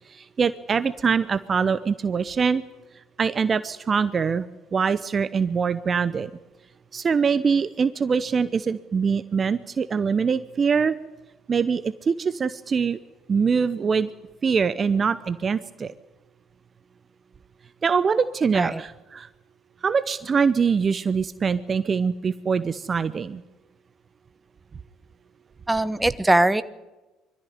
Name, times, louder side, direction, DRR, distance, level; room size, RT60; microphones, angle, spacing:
voice 1, 0.1-2.6 3.2-6.3 6.9-11.0 11.5-13.0 13.3-14.1 14.4-15.9 17.8-19.3 19.8-23.4, right 6 dB, 35° right, 14 dB, 0.8 m, -23 dB
voice 2, 25.7-26.6, right 1 dB, 10° right, 14 dB, 1.1 m, -21 dB
22.5 x 14.0 x 9.4 m, 1.1 s
hypercardioid pair, 60°, 0 cm